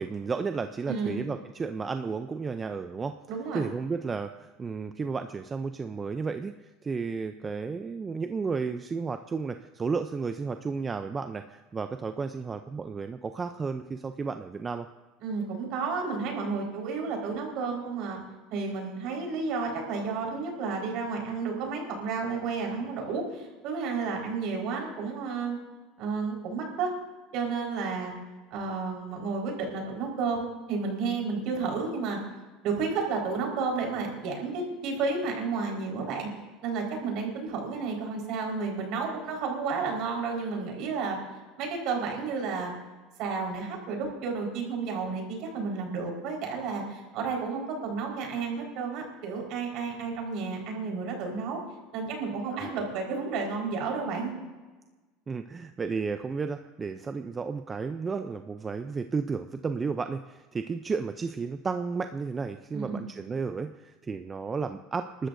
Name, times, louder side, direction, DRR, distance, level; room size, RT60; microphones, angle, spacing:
voice 1, 0.0-3.2 3.5-6.5 6.8-14.9 52.5-52.8 55.3-65.3, right 5 dB, 20° right, 8 dB, 0.4 m, -33 dB
voice 2, 0.9-1.2 3.3-3.6 15.2-18.2 18.5-25.6 26.0-26.9 27.3-28.1 28.5-32.2 32.6-36.3 36.6-41.2 41.6-42.7 43.2-51.6 51.9-54.3 62.7-63.0, right 4 dB, 55° right, 1 dB, 4.4 m, -31 dB
29.0 x 13.0 x 2.6 m, 1.2 s
supercardioid pair, 140°, 0 cm